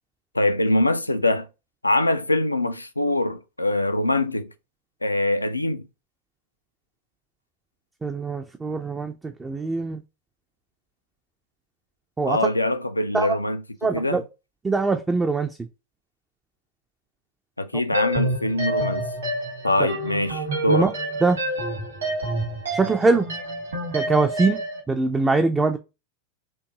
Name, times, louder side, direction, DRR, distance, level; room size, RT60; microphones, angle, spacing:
voice 1, 0.3-1.5 1.8-4.5 5.0-5.9 12.2-13.6 13.9-14.2 17.6-19.0 19.6-20.9, left 1 dB, 85° left, 0.4 m, -23 dB
voice 2, 8.0-10.0 12.2-12.4 13.1-13.4 13.8-14.2 14.6-15.5 19.8-19.9 20.7-20.9 21.2-21.4 22.7-23.3 23.9-24.6 24.9-25.8, right 3 dB, 15° right, 0.4 m, -22 dB
sound 1, 17.9-24.8, right 1 dB, 70° right, 1.8 m, -28 dB
4.5 x 2.6 x 2.8 m
figure-of-eight pair, 90°, 0 cm